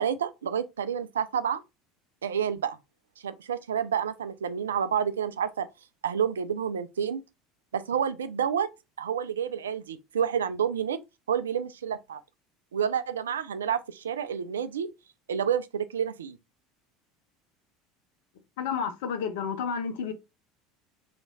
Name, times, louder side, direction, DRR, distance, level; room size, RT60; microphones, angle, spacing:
voice 1, 0.0-1.6 2.2-2.8 3.2-5.7 6.0-7.2 7.7-8.7 9.0-11.0 11.3-12.2 12.7-14.9 15.3-16.4, right 8 dB, 80° right, 0.4 m, -29 dB
voice 2, 18.6-20.1, left 6 dB, 70° left, 0.9 m, -30 dB
3.3 x 3.0 x 4.0 m
hypercardioid pair, 75°, 0 cm